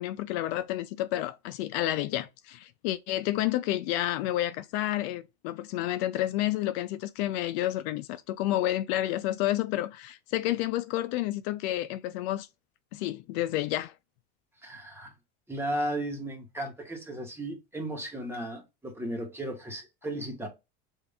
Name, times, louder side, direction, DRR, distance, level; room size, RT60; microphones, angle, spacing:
voice 1, 0.0-12.5 12.9-13.9, left 14 dB, 75° left, 0.5 m, -30 dB
voice 2, 14.6-15.1 15.5-20.5, right 1 dB, 5° right, 1.2 m, -35 dB
3.5 x 2.6 x 3.4 m
supercardioid pair, 125°, 32 cm